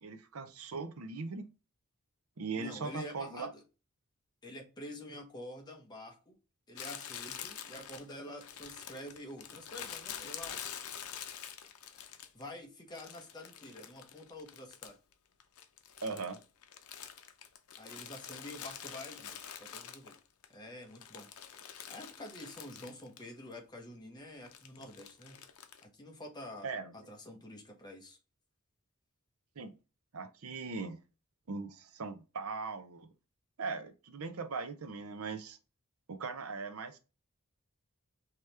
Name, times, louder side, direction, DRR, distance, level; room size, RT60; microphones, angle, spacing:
voice 1, 0.0-1.4 2.4-3.5 16.0-16.4 26.6-26.9 29.6-29.7 30.1-31.0 31.5-33.1 33.6-35.6 36.1-37.0, right 4 dB, 75° right, 0.7 m, -39 dB
voice 2, 2.6-3.6 4.4-6.4 6.7-10.6 12.3-15.0 17.7-20.2 20.5-21.3 21.9-25.4 25.8-26.7 26.9-28.2, left 1 dB, 20° left, 0.9 m, -47 dB
Crumpling crinkling, 6.8-12.5 13.0-15.1 15.4-20.5 20.8-23.3 23.5-23.6 24.5-25.8, left 9 dB, 85° left, 0.6 m, -46 dB
4.8 x 2.9 x 3.3 m
head